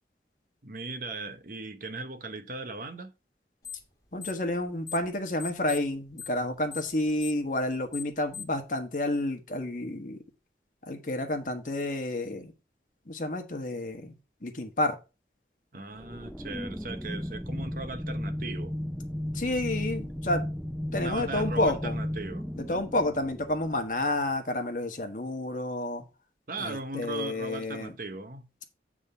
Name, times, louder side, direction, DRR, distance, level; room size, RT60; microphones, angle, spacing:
voice 1, 0.6-3.1 15.7-18.8 20.9-22.5 26.5-28.5, right 2 dB, 50° right, 1.0 m, -38 dB
sound 1, 3.6-3.9 4.2-5.1 5.4-8.6, left 8 dB, 20° left, 1.9 m, -41 dB
voice 2, 4.1-10.2 10.8-12.5 13.1-14.1 14.4-14.9 19.3-20.4 20.9-22.0 22.6-26.0 26.6-27.9, left 1 dB, 45° left, 1.4 m, -30 dB
sound 2, 16.0-24.2, equal, ahead, 0.3 m, -35 dB
8.8 x 3.7 x 5.5 m
head